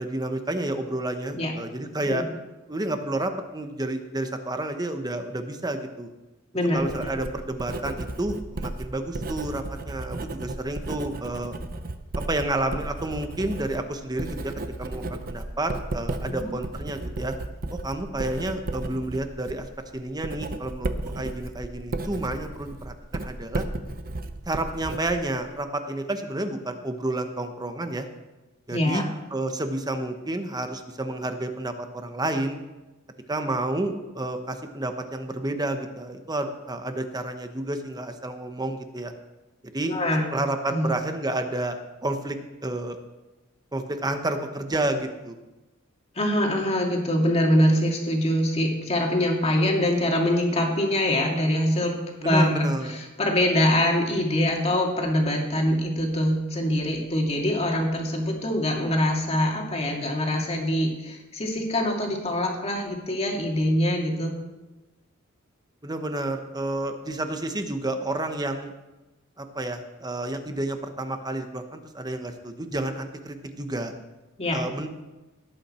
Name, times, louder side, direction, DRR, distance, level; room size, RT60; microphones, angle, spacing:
voice 1, 0.0-2.3 2.7-6.1 6.7-11.5 12.1-14.5 14.8-17.3 17.7-19.7 19.9-23.6 24.5-28.1 28.7-32.6 33.3-39.1 39.7-40.0 40.3-42.4 42.6-43.0 43.7-45.4 52.2-52.9 65.8-68.7 69.4-73.9 74.5-74.9, right 1 dB, 20° right, 7 dB, 1.0 m, -30 dB
voice 2, 6.5-7.1 16.3-16.6 28.7-29.0 39.9-40.3 40.7-40.9 46.1-64.3 74.4-74.6, left 1 dB, 30° left, 0 dB, 2.3 m, -24 dB
Writing, 6.7-25.6, right 2 dB, 45° right, 0.8 m, -34 dB
18.0 x 8.6 x 4.4 m, 1.1 s
head